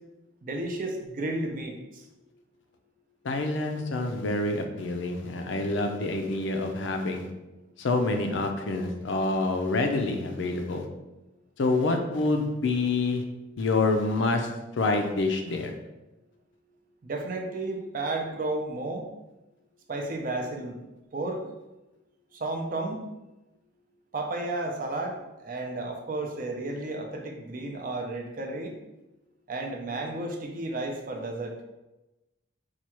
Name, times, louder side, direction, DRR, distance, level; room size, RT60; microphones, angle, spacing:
voice 1, 0.4-2.0 17.0-19.1 19.9-20.8 21.1-21.4 22.4-23.1 24.1-28.8 29.5-31.6, right 2 dB, 40° right, 2 dB, 0.4 m, -32 dB
voice 2, 3.2-7.3 7.8-10.8 11.6-13.2 13.6-14.5 14.8-15.7, left 2 dB, 60° left, 4 dB, 0.4 m, -27 dB
4.4 x 2.3 x 2.9 m, 1.0 s
head